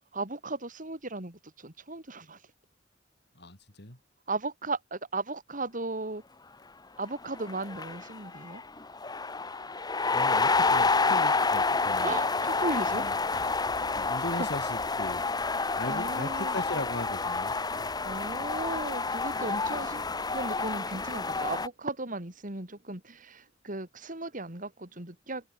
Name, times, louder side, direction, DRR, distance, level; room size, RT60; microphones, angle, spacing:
voice 1, 0.1-2.4 4.3-6.2 7.0-8.6 12.0-13.1 14.3-14.5 15.6-16.6 18.0-25.5, right 2 dB, 45° right, 3.9 m, -36 dB
voice 2, 3.4-4.0 10.1-12.2 12.9-13.1 13.9-17.9, left 1 dB, 65° left, 6.2 m, -38 dB
sound 1, 7.0-7.1 7.3-21.7, left 4 dB, 20° left, 1.3 m, -29 dB
head